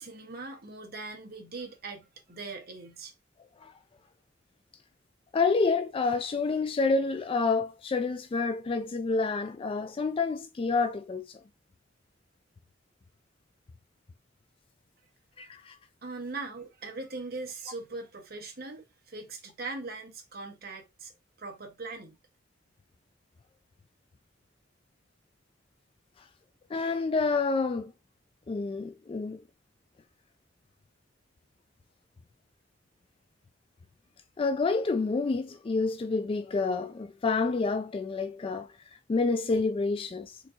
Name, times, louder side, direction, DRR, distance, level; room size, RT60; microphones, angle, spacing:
voice 1, 0.0-3.1 16.0-21.1 21.4-22.1, right 3 dB, 55° right, 1.3 m, -40 dB
voice 2, 5.3-11.4 15.4-15.8 26.7-27.9 28.5-29.4 34.4-38.7 39.1-40.4, left 4 dB, 30° left, 0.3 m, -28 dB
4.4 x 3.9 x 2.8 m
head